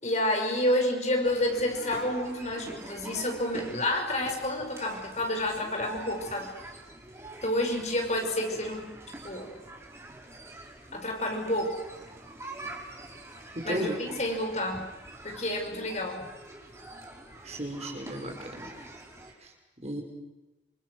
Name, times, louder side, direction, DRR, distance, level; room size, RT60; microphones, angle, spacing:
voice 1, 0.0-6.5 7.4-8.9 9.2-9.6 10.9-11.8 13.6-14.9 15.2-16.3, left 1 dB, 40° left, 3 dB, 5.8 m, -29 dB
sound 1, 1.2-19.3, right 1 dB, 15° right, 5.2 m, -45 dB
voice 2, 13.5-14.0 17.4-18.7 19.4-19.5 19.8-20.0, right 1 dB, 35° right, 2 dB, 5.8 m, -34 dB
28.5 x 27.5 x 6.4 m, 1.1 s
head